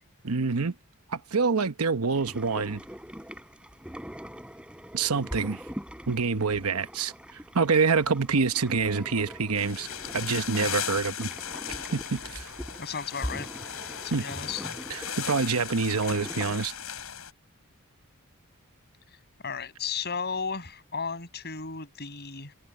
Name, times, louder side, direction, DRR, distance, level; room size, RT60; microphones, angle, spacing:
voice 1, 0.2-0.7 1.1-2.8 4.9-5.6 6.1-7.1 7.5-9.9 10.1-11.3 11.7-12.5 14.1-14.2 14.9-16.7, right 4 dB, 80° right, 1.0 m, -26 dB
sound 1, 2.1-16.6, equal, 5° right, 3.4 m, -43 dB
sound 2, 9.6-17.3, left 9 dB, 75° left, 7.2 m, -37 dB
voice 2, 12.8-13.5 14.0-14.7 19.4-22.5, left 5 dB, 45° left, 6.6 m, -34 dB
head